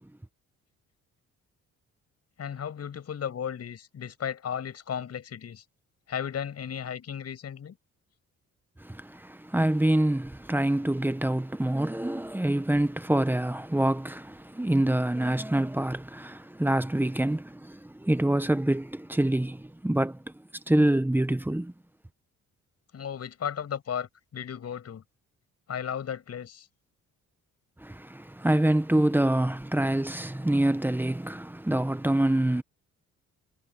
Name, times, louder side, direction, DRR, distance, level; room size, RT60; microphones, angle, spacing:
voice 1, 2.4-5.6 6.1-7.8 22.9-25.0 25.7-26.7, left 8 dB, 55° left, 7.2 m, -35 dB
voice 2, 8.8-20.3 20.7-21.7 27.8-32.6, right 1 dB, 5° right, 1.1 m, -26 dB
cardioid pair, 90°, 30 cm